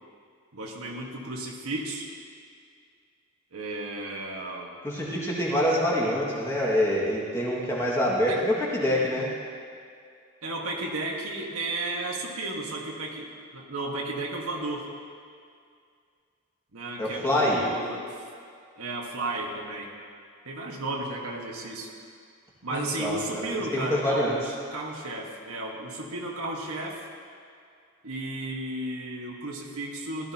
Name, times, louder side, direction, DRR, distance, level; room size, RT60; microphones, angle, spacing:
voice 1, 0.5-2.1 3.5-4.7 8.2-8.4 10.4-14.9 16.7-18.1 18.8-19.9 20.4-21.9 22.6-27.1 28.0-30.3, right 2 dB, 80° right, -1 dB, 1.5 m, -34 dB
voice 2, 4.8-9.3 17.0-17.6 22.7-24.4, left 1 dB, 15° left, -6 dB, 2.0 m, -26 dB
15.5 x 12.5 x 2.9 m, 2.3 s
head